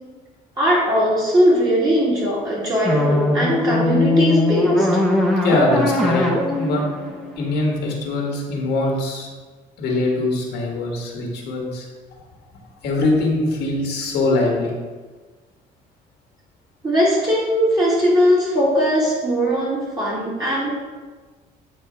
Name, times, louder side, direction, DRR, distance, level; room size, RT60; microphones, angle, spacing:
voice 1, 0.6-4.9 16.8-20.8, equal, 25° right, -7 dB, 2.0 m, -19 dB
sound 1, 2.8-8.0, left 2 dB, ahead, 1.0 m, -20 dB
voice 2, 5.4-6.8 7.4-9.3 9.8-11.9 12.8-14.7, left 2 dB, 75° left, 0 dB, 1.6 m, -22 dB
8.8 x 3.1 x 4.5 m, 1.3 s
cardioid pair, 110°, 17 cm